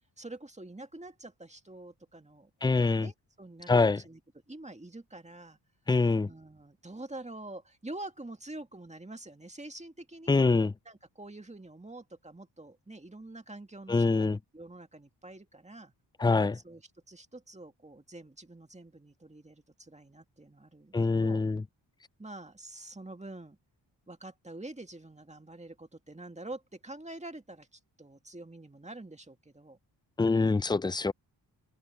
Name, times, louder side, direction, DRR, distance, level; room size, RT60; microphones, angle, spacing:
voice 1, 0.2-4.2 4.5-5.6 6.2-10.3 10.9-15.9 16.5-16.8 17.1-21.4 22.2-23.6 24.1-29.8, right 2 dB, 15° right, 2.0 m, -46 dB
voice 2, 2.6-3.1 3.7-4.0 5.9-6.3 10.3-10.7 13.9-14.4 16.2-16.6 20.9-21.6 30.2-31.1, left 3 dB, 10° left, 0.4 m, -25 dB
open air
cardioid pair, 60°, 44 cm